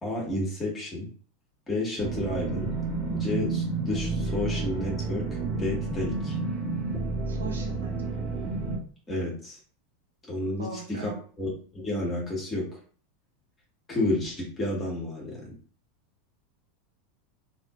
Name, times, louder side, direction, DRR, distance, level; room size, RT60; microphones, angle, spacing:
voice 1, 0.0-1.1 1.7-2.7 3.1-5.3 5.6-6.4 9.1-9.6 10.3-11.1 11.4-12.7 13.9-15.5, left 1 dB, 20° left, -3 dB, 1.5 m, -31 dB
sound 1, 2.0-8.8, right 3 dB, 20° right, 0.9 m, -30 dB
voice 2, 7.3-8.2 10.6-11.2, right 4 dB, 70° right, 1 dB, 0.7 m, -40 dB
2.9 x 2.9 x 2.5 m, 0.43 s
figure-of-eight pair, 85°, 0 cm